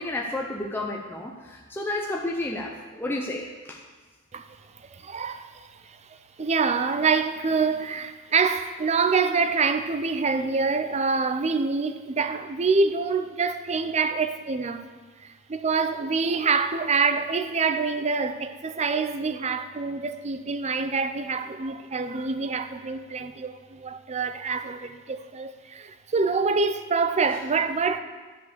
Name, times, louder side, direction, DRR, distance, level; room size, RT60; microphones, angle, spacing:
voice 1, 0.0-3.8, left 2 dB, 10° left, 0.7 m, -31 dB
voice 2, 4.3-14.8 15.2-28.0, right 4 dB, 30° right, 0.5 m, -26 dB
10.5 x 5.5 x 6.6 m
head